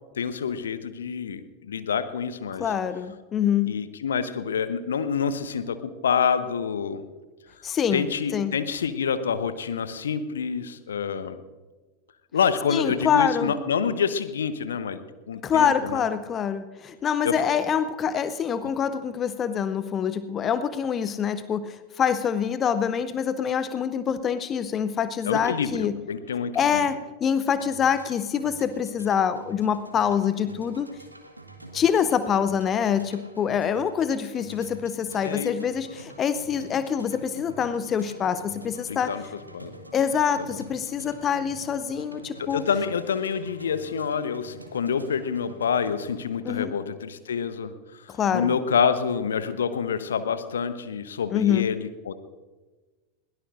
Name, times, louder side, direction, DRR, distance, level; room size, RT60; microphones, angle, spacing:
voice 1, 0.2-2.7 3.6-7.0 7.9-11.4 12.3-16.0 17.2-17.5 25.3-26.9 35.2-35.5 38.9-39.2 39.5-39.7 40.5-40.7 42.4-52.1, left 6 dB, 65° left, 12 dB, 0.9 m, -27 dB
voice 2, 2.6-3.8 7.6-8.0 8.3-8.5 12.7-13.5 15.4-25.9 26.5-30.9 31.7-39.1 39.9-42.7 46.4-46.7 48.1-48.5 51.3-51.7, left 8 dB, 25° left, 13 dB, 0.6 m, -25 dB
sound 1, 27.5-46.1, right 1 dB, 85° right, 1.6 m, -46 dB
21.5 x 17.0 x 2.5 m, 1.3 s
figure-of-eight pair, 90°, 0 cm